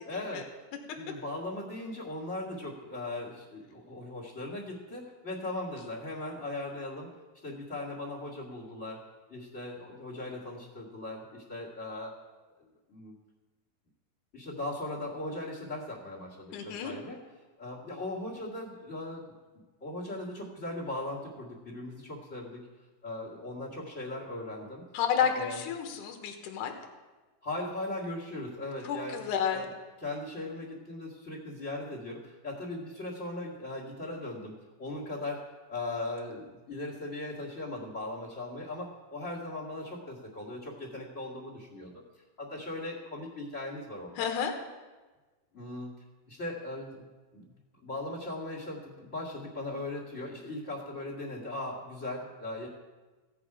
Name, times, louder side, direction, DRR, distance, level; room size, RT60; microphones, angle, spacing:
voice 1, 0.0-0.6 0.9-7.1 7.4-12.2 12.6-13.1 14.3-17.2 17.6-19.2 19.5-22.7 23.0-24.9 25.2-25.6 27.4-29.2 29.5-29.7 30.0-42.0 42.4-44.3 45.5-45.9 46.3-52.7, left 2 dB, 25° left, -1 dB, 1.9 m, -39 dB
voice 2, 16.5-16.9 24.9-26.7 28.8-29.7 44.2-44.5, left 7 dB, 70° left, 4 dB, 2.6 m, -30 dB
16.0 x 8.4 x 4.9 m, 1.3 s
omnidirectional pair, 3.9 m